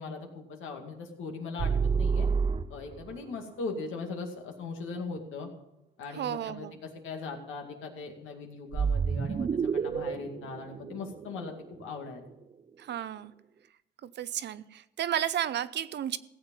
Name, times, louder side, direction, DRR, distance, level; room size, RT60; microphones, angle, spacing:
voice 1, 0.0-2.3 2.7-5.5 6.0-11.5 11.8-12.2, left 4 dB, 85° left, 2 dB, 2.3 m, -39 dB
sound 1, 1.6-3.1 8.7-11.8, right 6 dB, 30° right, 0.4 m, -29 dB
voice 2, 6.2-6.7 12.8-13.3 14.0-16.2, right 10 dB, 60° right, 15 dB, 0.7 m, -32 dB
16.5 x 7.9 x 5.5 m, 0.91 s
cardioid pair, 90°, 20 cm